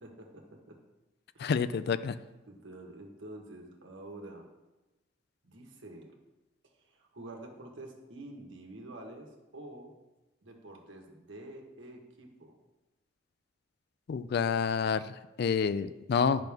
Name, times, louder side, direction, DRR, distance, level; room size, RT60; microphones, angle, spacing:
voice 1, 0.0-0.8 1.3-1.5 2.5-4.5 5.4-6.2 6.8-9.9 10.4-12.6, right 1 dB, 80° right, 1 dB, 1.4 m, -48 dB
voice 2, 1.4-2.2 14.1-16.5, left 6 dB, 55° left, 14 dB, 0.3 m, -29 dB
10.5 x 5.9 x 3.5 m, 1.1 s
head